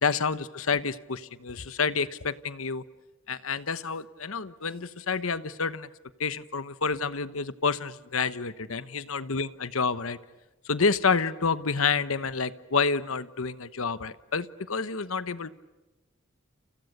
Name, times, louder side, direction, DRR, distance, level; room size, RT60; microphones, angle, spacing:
voice 1, 0.0-2.8 3.3-5.9 6.2-10.2 10.6-15.5, left 5 dB, 75° left, 13 dB, 1.1 m, -29 dB
30.0 x 29.5 x 6.7 m, 1.1 s
head